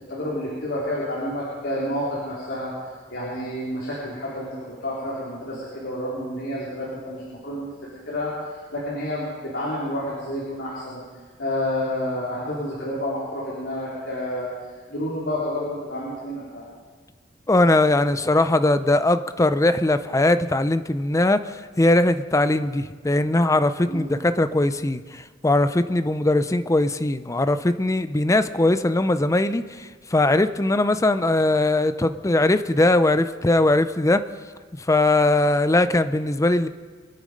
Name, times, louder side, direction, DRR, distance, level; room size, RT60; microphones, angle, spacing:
voice 1, 0.1-2.7 3.1-7.7 8.1-11.0 11.4-14.5 14.9-16.6 23.9-24.1, left 1 dB, 65° left, -7 dB, 3.9 m, -29 dB
voice 2, 17.5-34.2 34.9-36.7, left 2 dB, 15° left, 11 dB, 0.5 m, -20 dB
24.0 x 9.7 x 5.2 m, 1.5 s
head